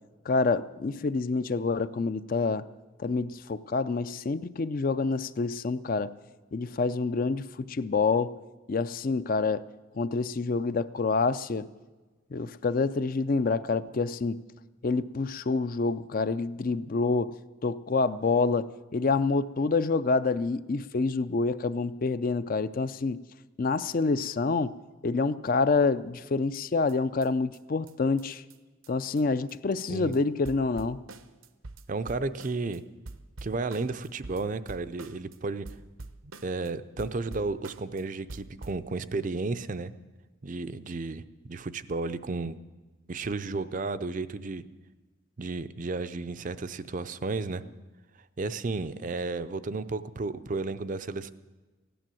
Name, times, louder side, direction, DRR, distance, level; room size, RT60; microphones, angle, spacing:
voice 1, 0.3-2.6 3.0-6.1 6.5-8.4 8.7-9.6 10.0-11.7 12.3-14.4 14.8-17.4 17.6-23.2 23.6-24.8 25.0-28.4 28.9-31.0, left 4 dB, 40° left, 14 dB, 0.4 m, -27 dB
sound 1, 26.5-26.6 26.9-27.0 27.2-27.3 27.5-27.6 27.9-28.0 28.2-28.3 28.5-28.6 28.8-28.9 29.2-29.3 29.5-29.9 30.1-30.2 30.4-32.8 33.1-35.4 35.7-36.7 37.0-38.0 38.3-38.9, right 2 dB, 75° right, 0.8 m, -45 dB
voice 2, 31.9-32.8 33.4-35.7 36.2-39.9 40.4-41.2 41.5-42.6 43.1-44.6 45.4-47.6 48.4-51.3, right 3 dB, 40° right, 13 dB, 0.5 m, -33 dB
16.0 x 10.0 x 7.6 m, 1.2 s
head